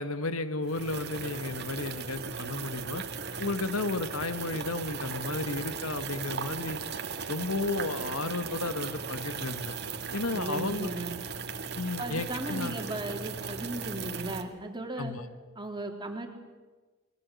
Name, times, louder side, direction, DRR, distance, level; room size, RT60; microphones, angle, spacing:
voice 1, 0.0-3.0 3.4-6.8 7.3-9.8 10.1-10.9 11.8-12.7 15.0-15.2, left 2 dB, 90° left, 11 dB, 1.7 m, -33 dB
sound 1, 0.6-14.4, right 5 dB, 55° right, 2.1 m, -37 dB
voice 2, 10.3-11.1 12.0-15.1 15.6-16.3, right 2 dB, 20° right, 3 dB, 3.8 m, -36 dB
29.5 x 22.0 x 8.5 m, 1.3 s
head